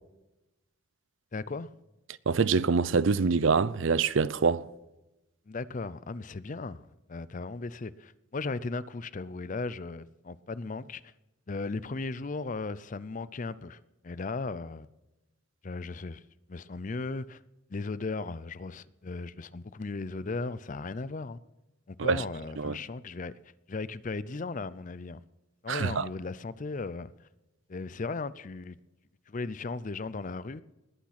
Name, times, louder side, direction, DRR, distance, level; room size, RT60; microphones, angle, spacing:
voice 1, 1.3-1.7 5.5-6.8 7.1-11.1 11.5-14.9 15.6-16.2 16.5-17.4 17.7-21.4 21.9-23.3 23.7-25.2 25.6-27.1 27.7-28.8 29.3-30.6, left 3 dB, 40° left, 0.5 m, -36 dB
voice 2, 2.3-4.7 22.0-22.2 22.6-22.8 25.7-26.1, right 5 dB, 65° right, 0.6 m, -25 dB
20.0 x 8.8 x 5.9 m
head